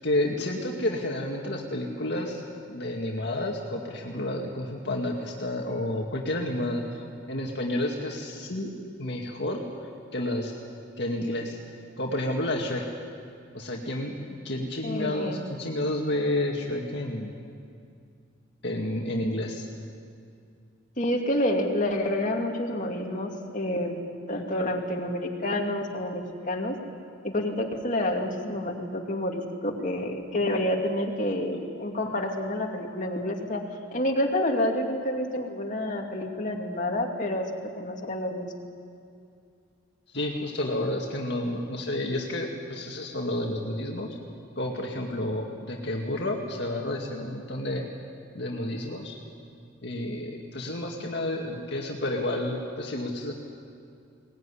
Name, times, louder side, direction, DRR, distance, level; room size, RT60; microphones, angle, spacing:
voice 1, 0.0-2.4 2.7-6.8 7.3-8.7 9.0-9.6 10.1-10.5 11.0-11.6 12.0-12.8 13.5-17.3 18.6-19.7 40.1-44.1 44.6-47.9 48.3-49.2 49.8-53.3, left 1 dB, 55° left, 0 dB, 2.1 m, -30 dB
voice 2, 14.8-15.4 21.0-26.7 27.2-33.6 33.9-38.5, left 1 dB, 40° left, 1 dB, 2.5 m, -28 dB
22.0 x 19.0 x 10.0 m, 2.4 s
head